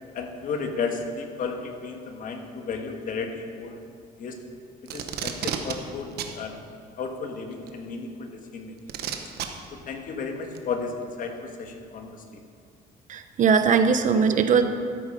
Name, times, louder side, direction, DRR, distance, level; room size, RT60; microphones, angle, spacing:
voice 1, 0.1-3.8 4.2-4.4 4.9-6.5 7.0-9.0 9.7-12.4, left 4 dB, 55° left, 4 dB, 1.4 m, -33 dB
Packing tape duct tape, 4.9-5.8 6.2-6.3 7.7-7.8 8.9-9.5 10.6-10.7, right 10 dB, 70° right, 1.1 m, -30 dB
voice 2, 13.1-14.6, right 6 dB, 50° right, 8 dB, 0.8 m, -20 dB
12.5 x 8.6 x 5.5 m, 2.3 s
cardioid pair, 110°, 17 cm